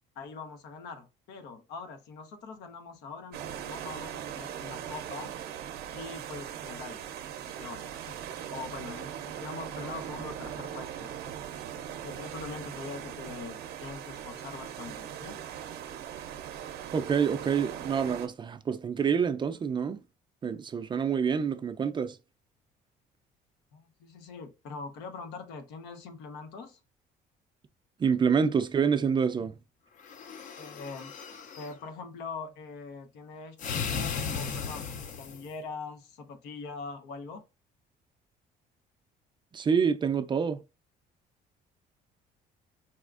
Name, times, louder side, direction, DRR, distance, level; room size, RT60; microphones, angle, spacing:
voice 1, 0.2-5.3 5.9-7.1 7.6-8.2 8.5-11.3 11.8-15.4 23.7-26.8 30.6-31.1 31.6-37.4, left 4 dB, 85° left, 0.7 m, -43 dB
sound 1, 3.3-18.3, right 10 dB, 75° right, 0.5 m, -40 dB
voice 2, 16.9-20.0 20.4-22.2 28.0-29.5 39.5-40.6, right 6 dB, 30° right, 0.4 m, -27 dB
sound 2, 30.0-31.7 33.6-35.5, left 6 dB, 50° left, 0.5 m, -36 dB
4.2 x 2.4 x 2.4 m
cardioid pair, 110°, 17 cm